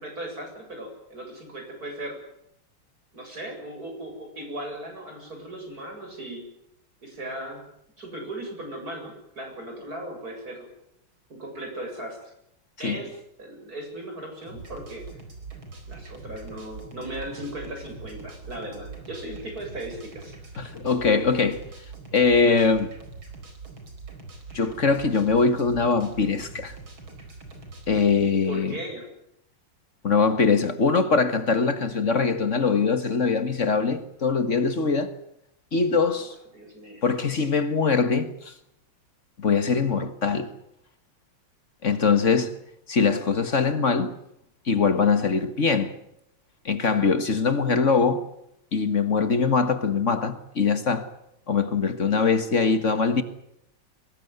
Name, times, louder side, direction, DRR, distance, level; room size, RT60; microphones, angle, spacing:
voice 1, 0.0-2.2 3.1-6.4 7.0-7.6 8.0-10.7 11.3-12.3 12.8-15.1 15.9-20.3 28.4-29.1 36.1-36.3 36.5-37.0 37.3-37.5, right 1 dB, 45° right, 8.1 m, -37 dB
sound 1, 14.4-28.1, right 4 dB, 70° right, 5.3 m, -43 dB
voice 2, 20.6-21.6 22.1-22.9 24.5-26.7 27.9-28.7 30.0-35.1 35.7-36.3 37.0-38.5 39.4-40.5 41.8-42.5 42.9-44.1 44.7-45.9 46.6-48.2 48.7-51.1 51.5-53.2, left 5 dB, 40° left, 1.8 m, -22 dB
23.5 x 19.5 x 9.5 m
omnidirectional pair, 2.3 m